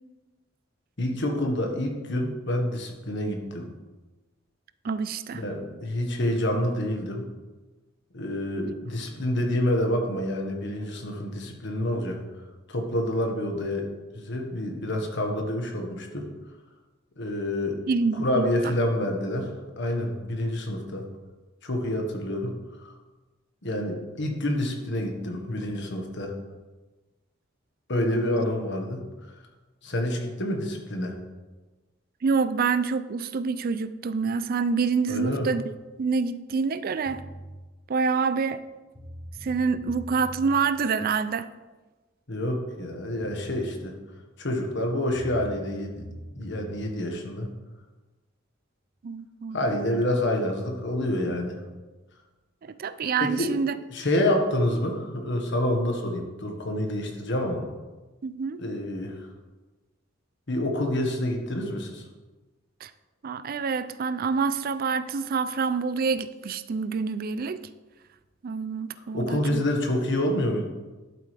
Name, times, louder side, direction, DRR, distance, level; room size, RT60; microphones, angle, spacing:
voice 1, 1.0-3.7 5.3-7.3 8.1-12.2 12.7-13.9 14.1-16.3 17.2-17.8 18.1-21.1 21.6-22.9 23.6-26.3 27.9-29.0 29.8-31.2 35.1-35.5 42.3-43.9 44.4-46.0 46.4-47.5 49.5-51.6 53.2-53.5 53.9-57.7 58.6-59.3 60.5-62.0 69.0-70.6, left 1 dB, 60° left, 2 dB, 1.6 m, -28 dB
voice 2, 4.8-5.4 8.7-8.8 17.9-18.5 28.1-28.4 32.2-35.6 36.0-37.2 37.9-38.6 39.4-41.5 49.0-49.6 52.6-53.8 58.2-58.6 62.8-62.9 63.2-67.6 68.4-69.6, right 5 dB, 50° right, 13 dB, 0.4 m, -27 dB
sound 1, 37.1-37.6 38.6-38.7 38.9-40.6 42.8-42.9 43.2-43.9 45.1-46.9, right 1 dB, 25° left, 1.2 m, -42 dB
11.5 x 7.7 x 3.4 m, 1.2 s
head